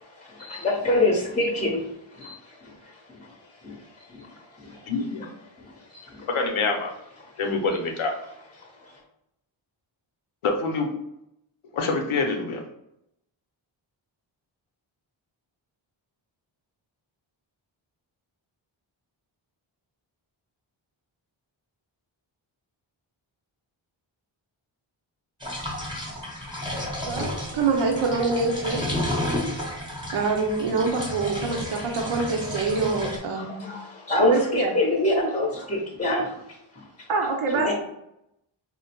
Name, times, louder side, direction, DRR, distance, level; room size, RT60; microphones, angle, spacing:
voice 1, 0.1-1.9 2.1-2.7 3.1-3.2 3.6-3.8 4.1-4.3 4.6-4.9 5.6-6.3 8.6-8.7 33.3-36.4 36.8-36.9 37.5-37.7, left 2 dB, 15° left, -4 dB, 0.7 m, -26 dB
voice 2, 4.9-5.3 6.3-6.9 7.4-8.1 10.4-10.9 11.7-12.6, left 3 dB, 85° left, 3 dB, 0.7 m, -25 dB
sound 1, 25.4-33.2, left 1 dB, 10° right, 1.0 m, -32 dB
voice 3, 27.0-28.8 30.1-33.7 34.2-34.8 37.1-37.7, right 4 dB, 75° right, 2 dB, 0.7 m, -25 dB
4.3 x 2.0 x 2.8 m, 0.81 s
cardioid pair, 75°, 48 cm